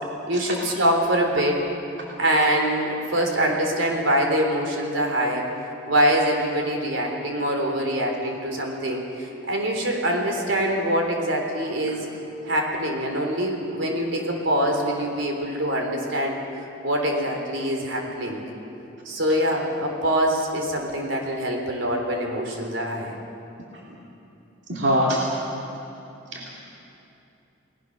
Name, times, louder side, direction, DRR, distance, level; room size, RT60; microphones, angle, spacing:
voice 1, 0.3-1.6 2.2-5.5 5.9-12.1 12.5-16.4 16.8-18.4 19.1-23.1, equal, 80° right, 2 dB, 3.7 m, -24 dB
voice 2, 24.7-25.2 26.3-26.6, equal, 60° right, -3 dB, 2.9 m, -23 dB
30.0 x 19.0 x 6.6 m, 2.8 s
head